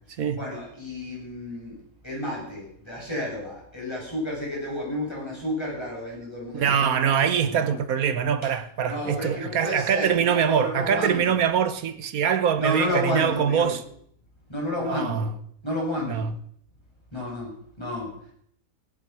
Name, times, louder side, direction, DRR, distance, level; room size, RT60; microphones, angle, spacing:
voice 1, 0.3-1.8 2.0-7.8 8.9-11.4 12.6-13.7 14.5-15.3 15.6-16.3 17.1-17.5 17.8-18.1, left 1 dB, 20° left, 7.3 m, -31 dB
voice 2, 6.5-13.8 14.8-15.3 16.1-16.3, right 8 dB, 85° right, 1.5 m, -24 dB
17.0 x 10.5 x 6.0 m
omnidirectional pair, 1.5 m